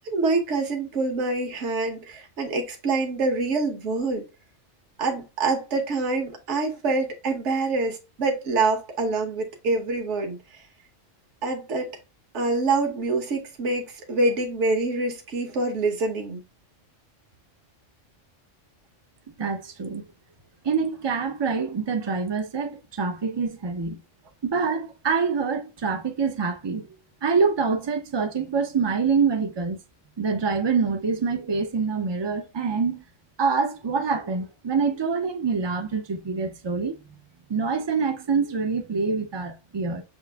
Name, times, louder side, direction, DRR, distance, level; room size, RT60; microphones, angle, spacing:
voice 1, 0.0-4.2 5.0-10.4 11.4-12.0 12.3-16.4, right 3 dB, 70° right, 1.4 m, -26 dB
voice 2, 19.4-20.1 20.6-24.0 24.4-26.9 27.2-29.8 30.2-33.0 33.4-37.0 37.5-40.0, right 5 dB, 35° right, 0.4 m, -25 dB
7.1 x 2.5 x 2.3 m
omnidirectional pair, 1.3 m